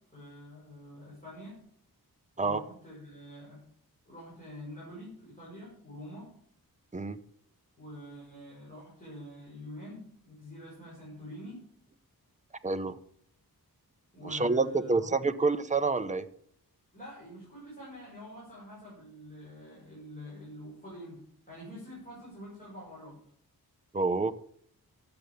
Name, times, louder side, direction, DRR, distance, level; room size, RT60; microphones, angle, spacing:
voice 1, 0.1-1.6 2.4-3.6 4.0-6.3 7.8-11.6 14.1-15.1 16.9-23.2, equal, 20° left, -7 dB, 6.4 m, -46 dB
voice 2, 12.6-13.0 14.2-16.3 23.9-24.3, right 3 dB, 20° right, 9 dB, 0.7 m, -28 dB
12.0 x 7.8 x 7.0 m, 0.64 s
wide cardioid pair, 120°, 37 cm